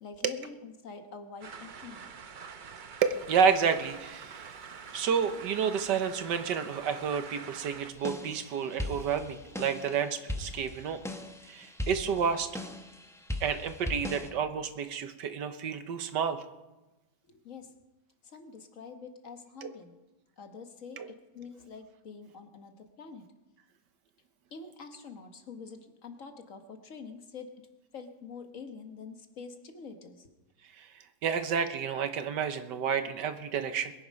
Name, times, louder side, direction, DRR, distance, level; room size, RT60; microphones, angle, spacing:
voice 1, 0.0-2.1 17.3-17.7 18.2-19.9 20.4-21.0 21.3-23.2 24.5-27.5 27.9-30.3, left 5 dB, 50° left, 6 dB, 1.6 m, -46 dB
sound 1, 1.4-7.9, right 6 dB, 55° right, 0.5 m, -46 dB
voice 2, 3.0-4.5 4.9-11.0 11.5-12.5 13.4-16.4 19.6-19.7 21.0-21.1 30.8-30.9 31.2-33.9, right 6 dB, 85° right, 9 dB, 1.6 m, -30 dB
sound 2, 7.9-14.3, left 1 dB, 5° left, 0.5 m, -39 dB
22.0 x 9.8 x 5.3 m, 1.0 s
omnidirectional pair, 1.8 m